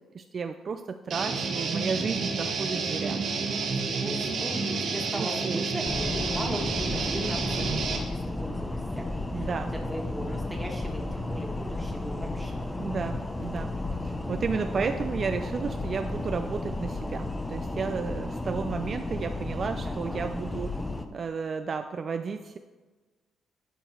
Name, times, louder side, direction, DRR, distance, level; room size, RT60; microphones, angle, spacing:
voice 1, 0.1-3.2 5.2-5.7 9.3-9.7 12.8-13.7 14.0-20.7 21.1-22.6, right 5 dB, 45° right, 7 dB, 0.4 m, -32 dB
Guitar, 1.1-8.0, right 4 dB, 70° right, 1.6 m, -30 dB
voice 2, 4.0-12.6 19.8-20.2, right 1 dB, 5° right, 1 dB, 1.7 m, -38 dB
sound 1, 5.8-21.1, left 2 dB, 15° left, 0.7 m, -33 dB
11.0 x 4.6 x 4.3 m, 1.3 s
cardioid pair, 90°, 0 cm